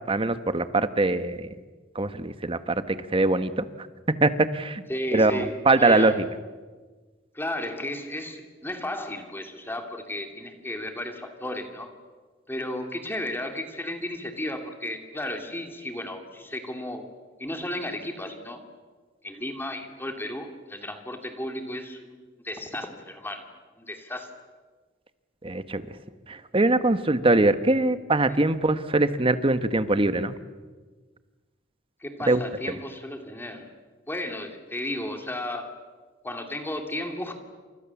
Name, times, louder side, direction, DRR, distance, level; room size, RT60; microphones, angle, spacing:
voice 1, 0.1-1.5 1.9-3.6 4.2-4.8 5.1-5.4 5.6-6.2 25.4-25.8 26.3-30.4 32.3-32.4, right 2 dB, 30° right, 12 dB, 1.2 m, -22 dB
voice 2, 4.9-6.2 7.3-11.9 12.5-17.1 17.4-18.6 19.2-23.5 23.8-24.4 28.3-28.4 32.0-33.7 34.1-35.8 36.2-37.3, left 1 dB, 10° left, 5 dB, 2.6 m, -34 dB
29.5 x 27.0 x 7.2 m, 1.4 s
head